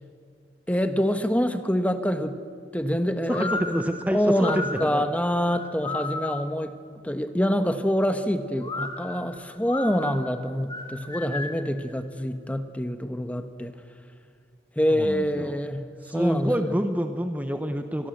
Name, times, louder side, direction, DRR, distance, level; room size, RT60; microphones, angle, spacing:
voice 1, 0.7-2.4 2.7-3.8 4.1-6.7 7.0-13.7 14.8-15.8 16.1-16.7, equal, 10° left, 8 dB, 1.1 m, -26 dB
sound 1, 3.3-6.6 8.6-11.7, left 2 dB, 25° left, 2.0 m, -34 dB
voice 2, 3.3-5.0 14.9-15.6 16.0-18.1, equal, 10° right, 7 dB, 1.0 m, -27 dB
26.0 x 22.0 x 7.9 m, 2.2 s
head